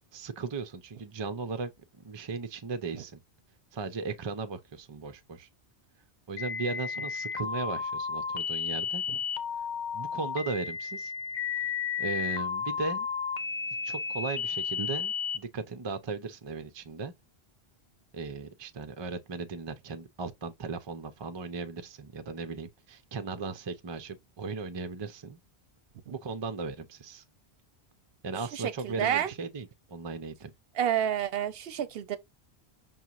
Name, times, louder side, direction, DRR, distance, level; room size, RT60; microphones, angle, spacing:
voice 1, 0.1-1.7 2.0-3.2 3.7-5.5 6.3-9.0 9.9-11.1 12.0-13.1 13.8-17.1 18.1-25.4 26.2-27.2 28.2-30.5, right 4 dB, 35° right, 0.4 m, -37 dB
sound 1, 6.4-15.4, left 6 dB, 50° left, 0.7 m, -33 dB
voice 2, 28.4-29.3 30.8-32.2, right 10 dB, 70° right, 0.8 m, -30 dB
5.5 x 2.9 x 2.4 m
omnidirectional pair, 1.1 m